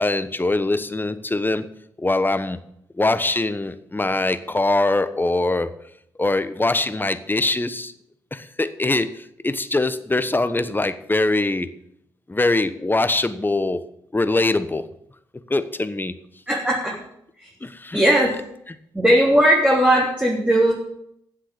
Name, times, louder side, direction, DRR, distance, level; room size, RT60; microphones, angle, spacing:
voice 1, 0.0-1.7 2.0-2.6 2.9-5.7 6.2-7.9 8.3-11.7 12.3-13.8 14.1-14.9 15.5-16.1 17.6-18.0, left 2 dB, 20° left, 12 dB, 1.1 m, -22 dB
voice 2, 16.5-17.0 17.4-17.5 17.9-18.3 18.9-20.7, right 1 dB, 10° right, -4 dB, 3.3 m, -18 dB
9.4 x 7.7 x 8.8 m, 0.74 s
hypercardioid pair, 40°, 10 cm